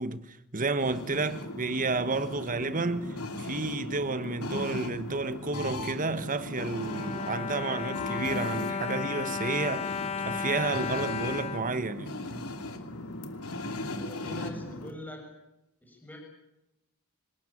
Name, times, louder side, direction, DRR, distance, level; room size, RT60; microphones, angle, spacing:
voice 1, 0.0-10.0 10.2-12.3, right 3 dB, 35° right, 1.3 m, -31 dB
sound 1, 0.8-14.9, left 1 dB, 85° left, 2.9 m, -38 dB
Bowed string instrument, 6.3-12.6 13.3-13.4 13.7-13.8, left 6 dB, 30° left, 1.1 m, -35 dB
voice 2, 14.0-15.3 15.8-16.2, left 1 dB, 10° left, 7.3 m, -43 dB
25.5 x 19.0 x 8.7 m
head